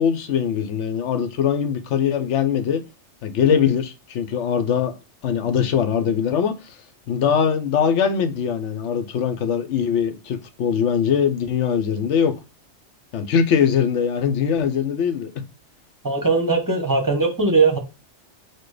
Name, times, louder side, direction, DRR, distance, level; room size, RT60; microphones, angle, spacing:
voice 1, 0.0-2.8 3.2-5.0 5.2-6.7 7.1-12.3 13.1-15.3, left 7 dB, 75° left, 0.9 m, -21 dB
voice 2, 16.0-17.8, right 3 dB, 20° right, 0.8 m, -19 dB
4.4 x 2.2 x 4.7 m
omnidirectional pair, 1.2 m